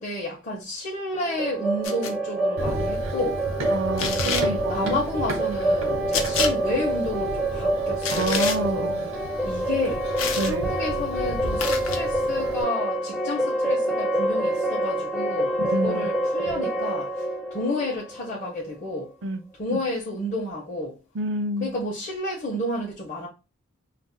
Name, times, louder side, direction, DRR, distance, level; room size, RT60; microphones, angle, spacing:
voice 1, 0.0-3.4 4.2-8.8 9.4-10.0 10.3-17.2 17.5-19.1 19.6-21.0 21.6-23.3, left 1 dB, 40° left, 0.7 m, -31 dB
sound 1, 1.1-18.9, right 1 dB, ahead, 0.4 m, -27 dB
sound 2, 1.8-2.1 4.0-4.5 6.1-6.5 8.0-8.6 10.2-10.5 11.6-12.0, left 6 dB, 85° left, 0.5 m, -28 dB
Run, 2.6-12.6, right 1 dB, 85° right, 0.9 m, -34 dB
voice 2, 3.7-5.0 8.1-9.1 10.4-10.7 15.6-16.1 16.5-16.7 19.2-19.4 19.7-19.8 21.1-21.7, right 1 dB, 60° right, 0.4 m, -29 dB
2.5 x 2.1 x 3.8 m
head